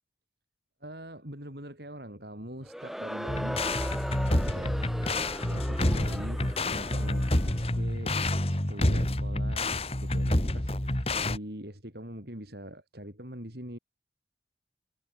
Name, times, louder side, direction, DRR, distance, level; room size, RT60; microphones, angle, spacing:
voice 1, 0.8-3.6 4.4-4.8 5.1-8.1 8.5-9.7 10.0-13.8, equal, 60° right, 7.4 m, -43 dB
Crowd, 2.6-7.7, equal, ahead, 7.4 m, -38 dB
sound 1, 3.3-11.4, left 1 dB, 35° left, 2.0 m, -28 dB
head